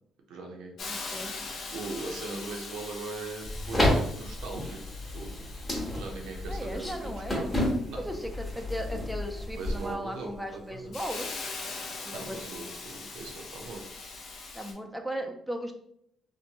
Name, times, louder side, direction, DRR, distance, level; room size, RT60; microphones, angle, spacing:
voice 1, 0.3-0.7 1.7-4.8 5.1-5.5 6.0-6.9 7.3-7.5 7.9-8.1 9.5-11.0 12.1-14.0, right 3 dB, 90° right, 1 dB, 0.6 m, -40 dB
Hiss, 0.8-14.7, left 3 dB, 65° left, 0.6 m, -42 dB
voice 2, 0.8-1.4 6.5-7.5 8.0-11.3 12.0-12.6 14.5-15.7, equal, 5° right, 4 dB, 0.4 m, -37 dB
sound 1, 3.4-9.9, left 1 dB, 15° left, 1.1 m, -31 dB
2.9 x 2.1 x 2.8 m, 0.70 s
cardioid pair, 90°, 0 cm